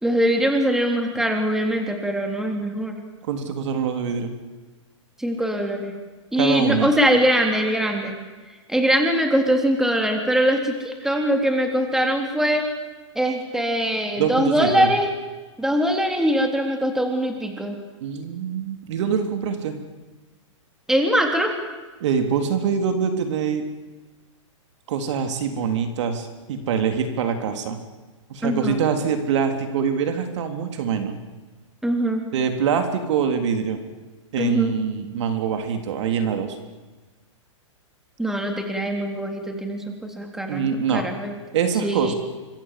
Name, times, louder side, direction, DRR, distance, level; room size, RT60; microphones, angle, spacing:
voice 1, 0.0-3.0 5.2-5.9 6.3-8.2 8.7-12.6 13.2-15.1 15.6-17.8 20.9-21.5 28.4-28.8 31.8-32.2 34.4-34.7 38.2-41.3 41.8-42.1, equal, 5° right, 3 dB, 3.8 m, -22 dB
voice 2, 3.2-4.3 6.4-6.9 14.2-14.9 18.0-19.8 22.0-23.7 24.9-27.8 28.3-31.2 32.3-33.8 34.3-36.6 40.5-41.1 41.5-42.1, right 7 dB, 60° right, 6 dB, 3.3 m, -24 dB
26.5 x 24.0 x 7.6 m, 1.3 s
hypercardioid pair, 135°, 17 cm